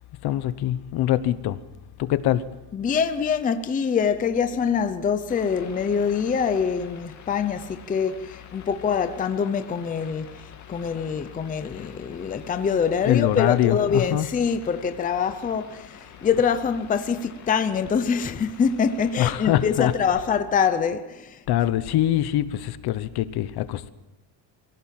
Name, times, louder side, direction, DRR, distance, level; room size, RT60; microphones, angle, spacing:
voice 1, 0.2-1.6 2.0-2.6 13.0-14.3 19.2-19.9 21.5-23.9, left 13 dB, 55° left, 1.1 m, -23 dB
voice 2, 2.7-10.4 10.7-21.4, left 6 dB, 20° left, 0.7 m, -24 dB
sound 1, 5.3-20.0, left 7 dB, 40° left, 2.6 m, -47 dB
23.5 x 16.5 x 7.6 m
cardioid pair, 180°, 46 cm